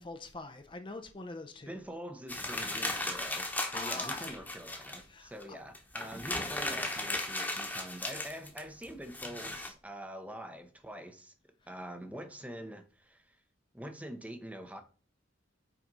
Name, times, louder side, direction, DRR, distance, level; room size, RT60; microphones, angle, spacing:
voice 1, 0.0-1.7 3.7-4.4 5.1-5.6, left 3 dB, 25° left, 0.6 m, -44 dB
voice 2, 1.7-11.3 11.7-13.4 13.7-14.8, equal, 5° right, 0.8 m, -45 dB
sound 1, 2.3-5.0 5.4-5.5 5.7-9.7, left 2 dB, 10° left, 1.2 m, -36 dB
5.9 x 4.3 x 5.3 m
head